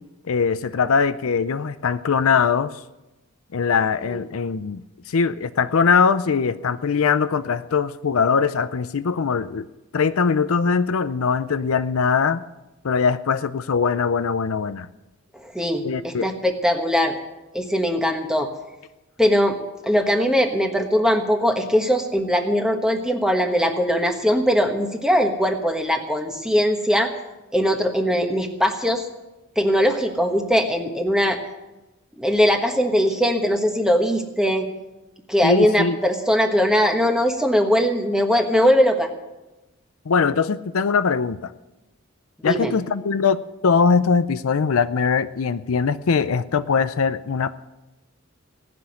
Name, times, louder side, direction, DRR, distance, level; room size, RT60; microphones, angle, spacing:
voice 1, 0.3-2.7 3.5-4.8 5.1-9.7 9.9-12.4 12.8-14.9 15.8-16.3 35.4-36.0 40.1-41.5 42.4-43.4 43.6-47.5, left 5 dB, 75° left, 13 dB, 0.5 m, -21 dB
voice 2, 15.4-17.2 17.5-18.5 19.2-19.6 19.8-27.1 27.5-29.1 29.6-31.4 32.2-34.7 35.3-39.1 42.4-42.7, equal, 5° right, 4 dB, 1.2 m, -20 dB
17.5 x 6.1 x 9.8 m, 1.0 s
head